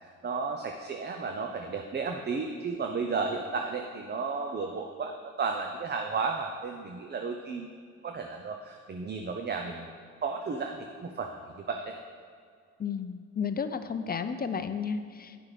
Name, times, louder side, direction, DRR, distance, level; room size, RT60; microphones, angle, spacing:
voice 1, 0.2-7.7 8.0-9.9 10.2-11.9, right 4 dB, 35° right, 4 dB, 0.7 m, -33 dB
voice 2, 12.8-15.4, left 6 dB, 30° left, 9 dB, 0.6 m, -32 dB
10.0 x 5.7 x 4.9 m, 2.2 s
cardioid pair, 90°, 30 cm